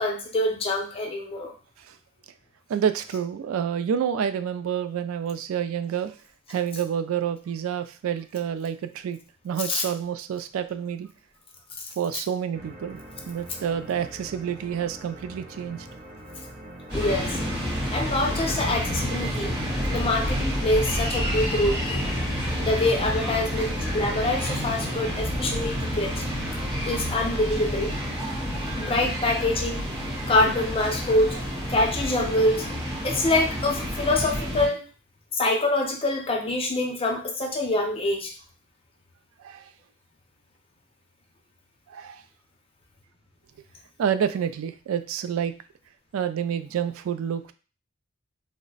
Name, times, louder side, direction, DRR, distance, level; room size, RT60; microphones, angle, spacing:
voice 1, 0.0-1.5 9.6-9.8 11.8-11.9 16.9-17.4 17.9-19.5 19.9-22.0 22.6-26.2 26.8-27.9 28.8-29.9 30.3-31.4 31.7-32.7 33.0-34.8 35.3-38.3, left 2 dB, 25° left, 3 dB, 0.6 m, -25 dB
voice 2, 2.7-6.1 6.5-9.2 9.4-11.1 12.0-13.0 13.3-15.9 30.4-30.5 39.4-39.7 41.9-42.2 44.0-45.5 46.1-47.5, right 8 dB, 75° right, 12 dB, 0.3 m, -28 dB
sound 1, 12.5-26.9, right 1 dB, 45° right, 0.9 m, -43 dB
sound 2, 16.9-34.7, equal, 25° right, 1.7 m, -29 dB
3.1 x 2.0 x 3.9 m, 0.36 s
head